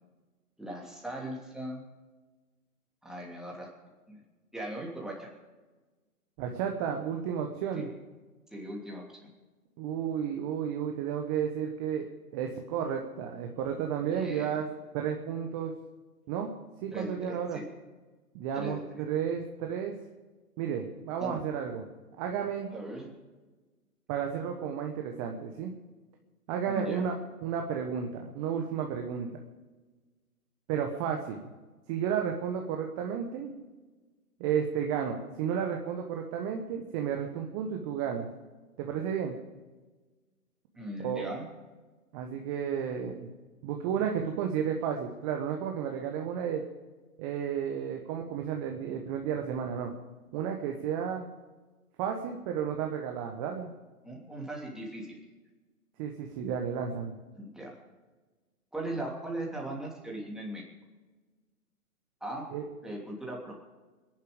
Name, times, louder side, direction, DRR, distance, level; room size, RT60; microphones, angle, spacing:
voice 1, 0.6-1.8 3.0-3.7 4.1-4.2 4.5-5.3 7.7-7.9 8.5-9.2 14.0-14.6 16.9-17.7 18.5-18.8 21.2-21.4 22.7-23.0 26.7-27.0 40.7-41.5 54.0-55.1 57.3-57.8 58.7-60.6 62.2-62.5 62.8-63.6, right 1 dB, ahead, -3 dB, 2.9 m, -38 dB
voice 2, 6.4-7.9 9.8-14.6 14.9-15.7 16.3-16.5 16.8-17.6 18.3-19.9 20.6-21.8 22.2-22.7 24.1-25.7 26.5-27.2 27.4-29.3 30.7-31.4 31.9-33.5 34.4-38.3 38.8-39.4 41.0-41.3 42.1-43.3 43.6-46.6 47.2-49.9 50.3-51.3 52.0-53.7 56.0-57.2 62.5-62.6, right 8 dB, 20° right, 3 dB, 1.2 m, -32 dB
23.5 x 11.0 x 5.2 m, 1.3 s
figure-of-eight pair, 135°, 45 cm